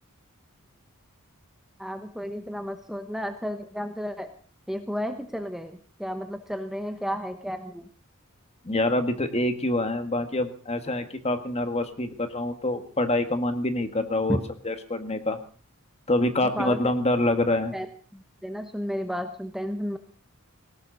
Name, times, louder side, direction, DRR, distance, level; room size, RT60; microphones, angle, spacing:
voice 1, 1.8-4.3 4.7-7.9 14.3-14.4 16.6-16.9 17.7-17.9 18.1-20.0, equal, ahead, 7 dB, 1.0 m, -32 dB
voice 2, 8.6-14.4 14.6-15.4 16.1-17.7, left 1 dB, 30° left, 8 dB, 1.6 m, -26 dB
19.0 x 17.5 x 4.0 m, 0.42 s
head